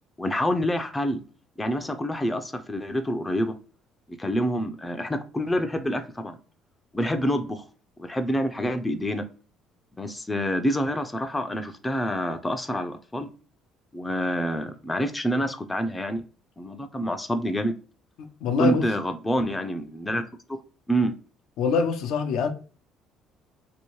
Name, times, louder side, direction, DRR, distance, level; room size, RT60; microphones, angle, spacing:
voice 1, 0.2-1.2 1.6-3.6 4.1-6.4 6.9-7.6 8.0-9.3 10.0-13.3 13.9-16.2 16.6-17.7 18.6-20.2 20.5-20.6 20.9-21.1, equal, 15° left, 0.5 m, -27 dB
voice 2, 18.2-18.9 21.6-22.5, left 5 dB, 75° left, 0.5 m, -24 dB
3.0 x 2.8 x 3.0 m
supercardioid pair, 70°, 0 cm